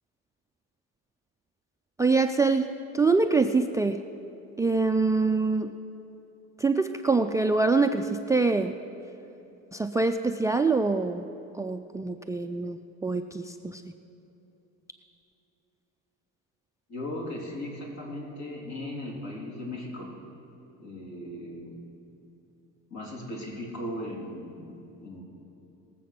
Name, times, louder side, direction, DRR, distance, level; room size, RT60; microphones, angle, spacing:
voice 1, 2.0-2.7 2.9-4.0 4.6-5.7 6.6-8.7 9.7-11.3 11.5-13.8, right 3 dB, 10° right, 8 dB, 0.3 m, -25 dB
voice 2, 16.9-20.1 20.8-21.8 22.9-25.2, left 1 dB, 60° left, -3 dB, 3.6 m, -37 dB
19.5 x 7.5 x 5.9 m, 2.9 s
cardioid pair, 110°, 31 cm